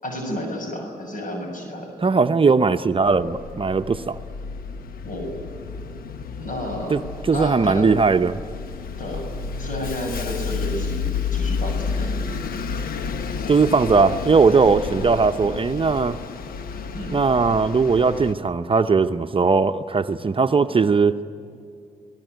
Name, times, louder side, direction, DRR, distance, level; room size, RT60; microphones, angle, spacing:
voice 1, 0.0-1.9 5.0-5.3 6.4-7.0 7.3-7.9 9.0-9.2 9.6-12.1 16.9-17.2, left 1 dB, 60° left, 2 dB, 6.8 m, -31 dB
voice 2, 2.0-4.2 6.9-8.4 13.5-16.2 17.1-21.2, right 4 dB, 35° right, 8 dB, 0.8 m, -19 dB
Bus, 3.0-18.3, left 5 dB, 80° left, 1.1 m, -31 dB
26.5 x 18.5 x 9.2 m, 2.4 s
supercardioid pair, 55°, 15 cm